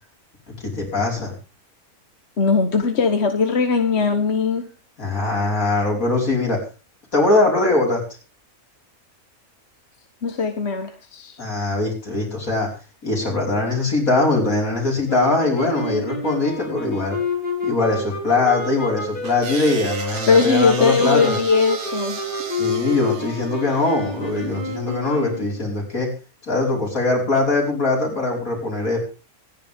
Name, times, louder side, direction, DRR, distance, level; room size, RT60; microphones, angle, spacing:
voice 1, 0.5-1.3 5.0-6.6 7.1-8.0 11.4-12.7 13.0-17.2 17.6-21.4 22.6-26.1 26.5-29.0, left 2 dB, 70° left, -1 dB, 5.6 m, -21 dB
voice 2, 2.4-4.7 10.2-11.4 20.3-22.2, left 5 dB, 50° left, 6 dB, 1.6 m, -19 dB
sound 1, 15.1-25.6, left 2 dB, 35° left, 4.8 m, -29 dB
sound 2, 19.2-24.6, right 5 dB, 65° right, 2.0 m, -34 dB
25.0 x 10.5 x 3.6 m, 0.35 s
omnidirectional pair, 1.5 m